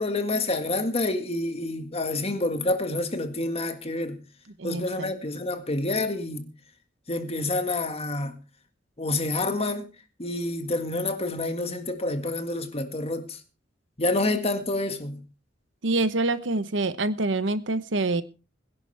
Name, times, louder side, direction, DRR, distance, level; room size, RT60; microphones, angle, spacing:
voice 1, 0.0-4.2 4.6-6.5 7.1-8.4 9.0-9.8 10.2-13.4 14.0-15.2, left 2 dB, 30° left, 1.8 m, -28 dB
voice 2, 4.6-5.1 15.8-18.2, right 2 dB, 70° right, 1.0 m, -26 dB
21.5 x 11.0 x 3.4 m
head